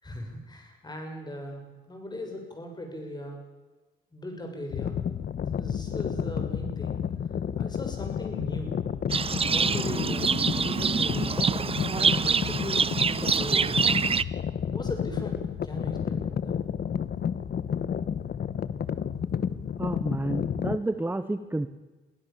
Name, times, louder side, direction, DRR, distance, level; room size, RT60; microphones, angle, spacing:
voice 1, 0.0-3.4 4.1-5.2 5.5-7.0 7.6-8.9 9.3-11.5 11.9-13.9 14.7-16.5, left 1 dB, 20° left, 3 dB, 6.8 m, -39 dB
sound 1, 4.7-20.8, left 8 dB, 50° left, 1.1 m, -31 dB
Livestock farm animals working animals, 9.1-14.2, right 5 dB, 30° right, 0.6 m, -25 dB
voice 2, 19.8-21.7, right 2 dB, 10° right, 11 dB, 1.0 m, -30 dB
24.0 x 16.0 x 7.2 m, 1.2 s
cardioid pair, 90°, 20 cm